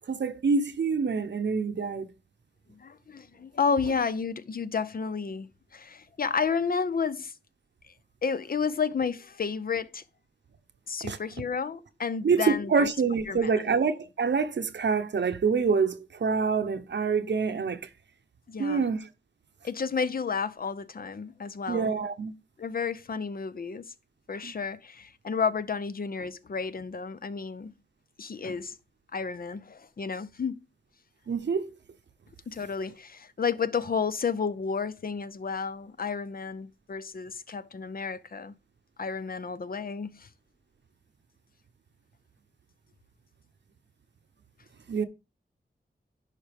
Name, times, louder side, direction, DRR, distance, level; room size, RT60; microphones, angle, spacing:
voice 1, 0.1-2.1 11.0-11.2 12.2-17.9 18.6-19.1 21.7-22.3 24.4-24.5 31.3-31.7 44.9-45.0, right 5 dB, 85° right, 0.8 m, -26 dB
voice 2, 2.7-7.3 8.2-10.0 10.9-12.9 13.3-13.6 18.5-18.8 19.6-21.9 22.6-23.9 24.3-27.7 28.2-28.8 29.1-30.6 32.5-38.5 39.0-40.3, left 5 dB, 55° left, 0.6 m, -31 dB
11.0 x 4.9 x 3.4 m
wide cardioid pair, 100°, 18 cm